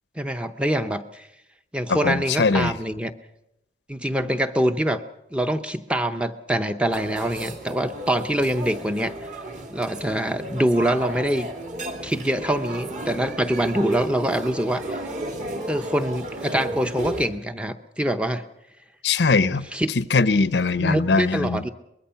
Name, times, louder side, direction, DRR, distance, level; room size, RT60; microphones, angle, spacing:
voice 1, 0.2-1.3 1.7-3.1 3.9-5.0 5.3-9.1 9.7-11.5 12.0-15.0 15.7-18.4 19.7-19.9 20.8-21.7, right 1 dB, 5° right, 8 dB, 0.7 m, -24 dB
voice 2, 1.9-2.7 19.0-19.6 20.0-21.6, left 4 dB, 85° left, 14 dB, 0.7 m, -21 dB
sound 1, 6.9-17.3, right 1 dB, 45° right, 2.5 m, -33 dB
23.5 x 21.0 x 5.8 m, 0.87 s
head